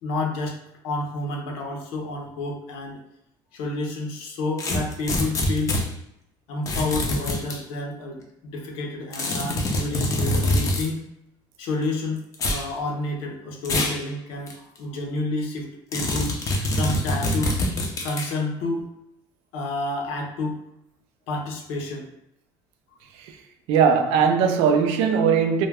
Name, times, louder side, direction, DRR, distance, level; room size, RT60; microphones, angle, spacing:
voice 1, 0.0-3.0 3.5-5.7 6.5-11.0 11.6-16.4 16.7-17.5 18.0-18.8 19.5-20.6 21.3-22.1, left 2 dB, 85° left, 0.6 m, -30 dB
sound 1, 4.6-5.9 6.7-7.6 9.1-10.9 12.3-12.7 13.6-14.0 14.5-14.6 15.9-18.3, left 1 dB, 35° left, 0.5 m, -25 dB
voice 2, 23.7-25.7, right 6 dB, 80° right, 0.4 m, -19 dB
2.3 x 2.1 x 3.3 m
cardioid pair, 135°, 10 cm